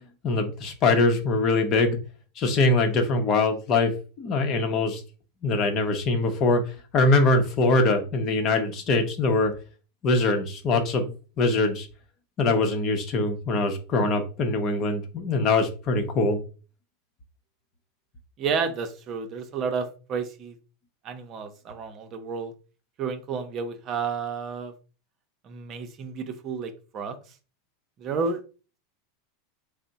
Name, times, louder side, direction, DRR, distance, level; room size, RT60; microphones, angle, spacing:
voice 1, 0.2-2.0 2.4-3.9 4.2-5.0 5.4-6.6 6.9-9.5 10.0-11.1 11.4-11.9 12.4-16.4, left 2 dB, 40° left, 5 dB, 0.8 m, -23 dB
voice 2, 18.4-20.6 21.0-22.5 23.0-24.7 25.4-27.2 28.0-28.4, right 5 dB, 40° right, 6 dB, 0.7 m, -31 dB
3.4 x 2.1 x 4.0 m, 0.35 s
supercardioid pair, 115°, 0 cm